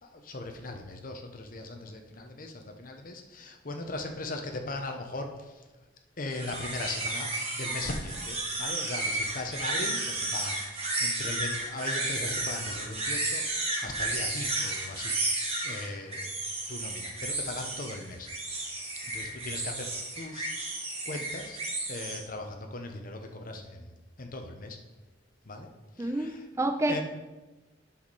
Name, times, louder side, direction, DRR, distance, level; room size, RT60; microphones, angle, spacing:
voice 1, 0.0-5.7 6.2-15.2 15.6-16.3 16.7-18.3 19.0-21.6 21.9-23.9 24.2-24.8 25.4-26.5 26.9-27.0, left 2 dB, 45° left, 4 dB, 1.0 m, -39 dB
sound 1, 6.3-22.2, right 2 dB, 35° right, 1.9 m, -33 dB
voice 2, 26.0-27.0, right 1 dB, 15° right, 8 dB, 0.3 m, -29 dB
9.3 x 6.4 x 4.2 m, 1.1 s
head